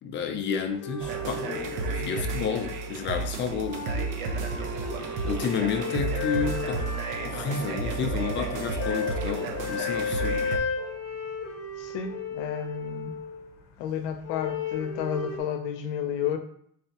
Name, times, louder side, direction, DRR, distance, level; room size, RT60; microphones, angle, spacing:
voice 1, 0.0-3.8 5.2-6.9 7.2-10.5, left 6 dB, 35° left, 6 dB, 0.4 m, -31 dB
sound 1, 0.7-3.1 3.4-13.6 14.2-15.4, left 5 dB, 50° left, 0.9 m, -34 dB
vocal perc outro music, 1.0-10.6, right 4 dB, 65° right, 0.7 m, -32 dB
voice 2, 11.8-13.2 13.8-16.4, left 8 dB, 90° left, 7 dB, 0.6 m, -31 dB
3.9 x 3.3 x 2.8 m, 0.66 s
cardioid pair, 135°, 34 cm